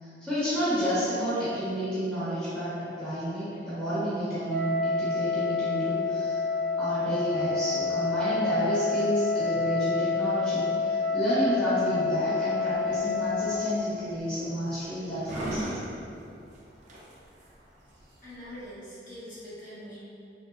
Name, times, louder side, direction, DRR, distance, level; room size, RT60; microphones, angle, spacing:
voice 1, 0.0-6.4 6.8-15.8, equal, 5° left, -14 dB, 0.7 m, -30 dB
Wind instrument woodwind instrument, 4.4-13.8, left 4 dB, 75° left, 0.7 m, -28 dB
sound 1, 12.7-18.7, right 1 dB, 45° right, 0.4 m, -40 dB
voice 2, 18.2-20.0, equal, 45° left, -12 dB, 1.2 m, -43 dB
3.1 x 2.3 x 2.2 m, 2.6 s
head